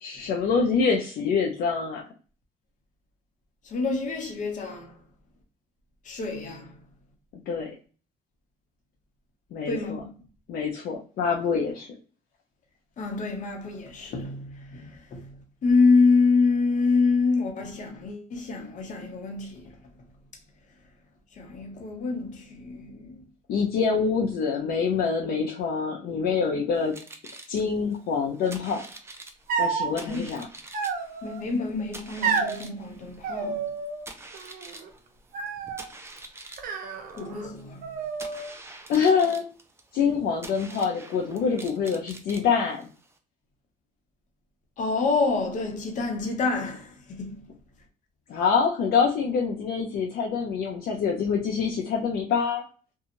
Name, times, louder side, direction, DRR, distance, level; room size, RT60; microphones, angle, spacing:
voice 1, 0.0-2.0 7.5-7.7 9.5-10.0 10.5-11.9 23.5-26.9 27.5-28.8 29.6-30.5 38.9-39.4 39.9-42.9 48.3-52.6, left 5 dB, 65° left, 0.5 m, -25 dB
voice 2, 3.6-5.0 6.0-6.8 9.6-10.1 13.0-19.8 21.3-23.2 30.1-30.2 31.2-33.7 37.1-38.0 44.8-47.5, left 4 dB, 50° left, 0.9 m, -26 dB
sound 1, 26.7-43.2, right 2 dB, 15° right, 0.5 m, -46 dB
sound 2, 29.5-29.9 30.7-31.4 32.2-32.6 33.2-34.1 34.3-34.9 35.3-35.9 36.6-37.5 37.8-38.5, right 5 dB, 60° right, 0.7 m, -30 dB
2.6 x 2.3 x 2.8 m
cardioid pair, 110°, 17 cm